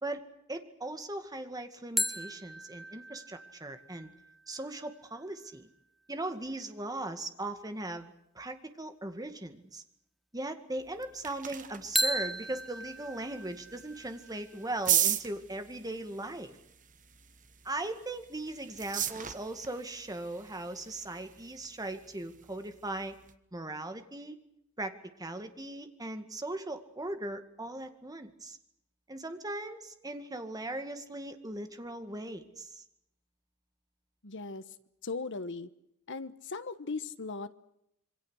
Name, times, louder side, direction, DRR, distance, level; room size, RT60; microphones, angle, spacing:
voice 1, 0.0-4.1 4.5-5.7 6.1-9.8 10.3-16.6 17.6-23.2 23.5-24.4 24.8-28.6 29.1-32.8, right 2 dB, 20° right, 8 dB, 2.1 m, -39 dB
sound 1, 2.0-5.5 12.0-14.7, equal, ahead, 0.9 m, -36 dB
sound 2, 10.8-23.3, right 10 dB, 40° right, 1.3 m, -38 dB
voice 2, 34.2-34.6 35.0-35.7 36.1-37.5, left 3 dB, 60° left, 12 dB, 1.3 m, -38 dB
27.0 x 24.0 x 6.5 m, 0.79 s
head